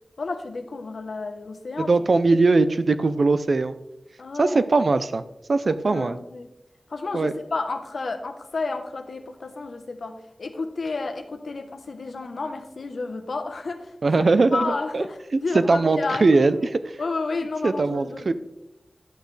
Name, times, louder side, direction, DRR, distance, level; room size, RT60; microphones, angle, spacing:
voice 1, 0.2-1.9 4.2-4.7 5.9-6.5 6.9-16.3 17.0-18.3, left 3 dB, 85° left, 7 dB, 1.0 m, -31 dB
voice 2, 1.8-3.7 4.4-5.2 5.5-6.2 7.1-7.3 14.0-15.0 15.5-16.6 17.6-18.3, right 3 dB, 65° right, 12 dB, 0.6 m, -20 dB
11.5 x 8.2 x 3.3 m, 0.92 s
wide cardioid pair, 85°, 0 cm